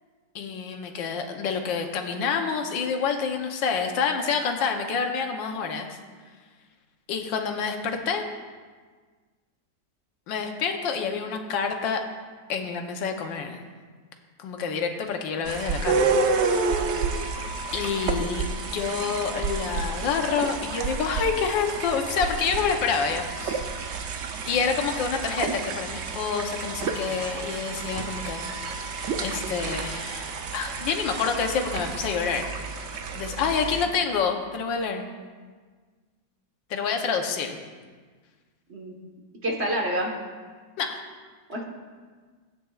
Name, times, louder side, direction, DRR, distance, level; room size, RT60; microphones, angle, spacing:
voice 1, 0.3-6.0 7.1-8.2 10.3-12.0 12.5-13.6 14.4-16.2 17.7-23.7 24.5-28.4 28.8-35.0 36.7-37.6 40.8-41.0, left 6 dB, 85° left, 4 dB, 1.5 m, -28 dB
sound 1, 15.5-33.9, right 4 dB, 85° right, 0.6 m, -30 dB
voice 2, 39.4-40.2 41.5-41.6, equal, 40° right, -2 dB, 1.5 m, -27 dB
16.0 x 8.9 x 2.4 m, 1.5 s
omnidirectional pair, 2.0 m